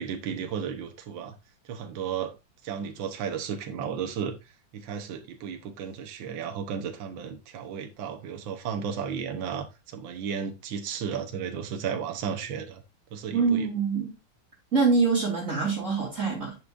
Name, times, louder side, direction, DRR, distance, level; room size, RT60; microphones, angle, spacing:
voice 1, 0.0-1.4 1.7-2.3 2.6-4.4 4.7-12.8 13.1-13.7, right 7 dB, 70° right, 1.7 m, -34 dB
voice 2, 13.3-14.1 14.7-16.6, right 4 dB, 35° right, 3.4 m, -24 dB
10.0 x 6.2 x 2.5 m
omnidirectional pair, 2.2 m